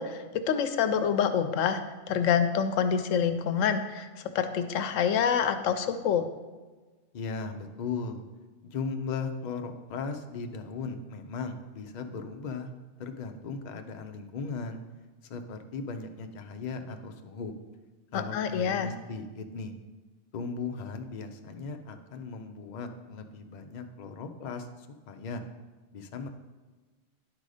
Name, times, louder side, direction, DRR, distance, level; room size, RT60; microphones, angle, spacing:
voice 1, 0.0-1.8 2.1-4.1 4.3-6.3 18.1-18.9, left 7 dB, 90° left, 9 dB, 1.0 m, -26 dB
voice 2, 7.1-8.2 8.6-12.7 13.0-14.8 15.2-17.5 18.1-19.7 20.3-25.4 25.9-26.3, left 4 dB, 45° left, 5 dB, 0.6 m, -37 dB
10.5 x 4.0 x 4.9 m, 1.3 s
omnidirectional pair, 1.3 m